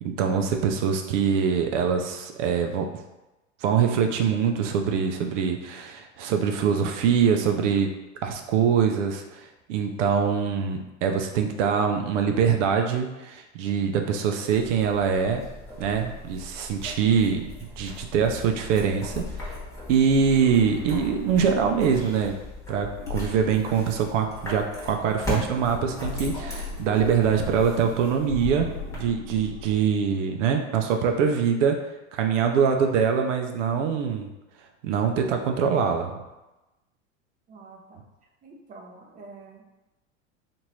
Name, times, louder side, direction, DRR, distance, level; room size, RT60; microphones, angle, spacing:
voice 1, 0.0-2.9 3.6-7.9 8.2-15.4 15.8-17.5 17.8-19.6 19.9-22.4 22.7-31.9 32.1-34.3 34.8-36.2, right 7 dB, 70° right, 4 dB, 0.5 m, -24 dB
sound 1, 14.5-29.0, left 1 dB, 10° left, 1.0 m, -39 dB
sound 2, 20.1-22.0 22.9-24.4 25.8-27.9 28.2-29.9, left 4 dB, 80° left, 0.6 m, -37 dB
voice 2, 37.5-38.0 38.4-39.6, right 3 dB, 20° right, 0 dB, 0.6 m, -46 dB
2.9 x 2.5 x 3.0 m, 1.0 s
hypercardioid pair, 100°, 38 cm